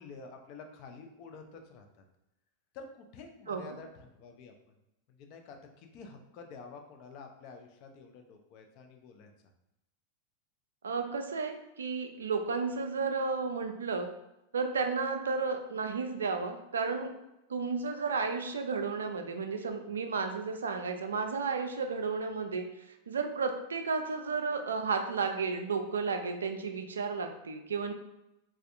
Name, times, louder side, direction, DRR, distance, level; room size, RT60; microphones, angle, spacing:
voice 1, 0.0-2.0 2.7-4.5 5.1-9.3, left 4 dB, 40° left, 4 dB, 0.4 m, -49 dB
voice 2, 10.8-14.1 14.5-17.1 17.5-22.7 23.1-27.9, right 4 dB, 70° right, 6 dB, 0.3 m, -33 dB
3.2 x 2.3 x 2.5 m, 0.89 s
figure-of-eight pair, 90°, 0 cm